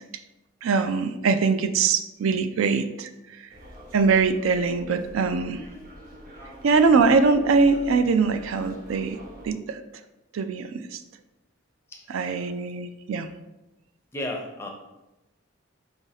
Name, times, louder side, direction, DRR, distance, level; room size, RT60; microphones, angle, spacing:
voice 1, 0.6-3.4 3.9-5.6 6.6-9.2 9.4-9.8 10.3-11.0 12.1-13.3, right 4 dB, 75° right, 9 dB, 0.4 m, -22 dB
sound 1, 3.5-9.5, equal, 45° right, 0.9 m, -45 dB
voice 2, 11.9-12.5 14.1-14.7, left 1 dB, 10° left, 2 dB, 0.5 m, -36 dB
4.8 x 2.5 x 4.0 m, 0.98 s
head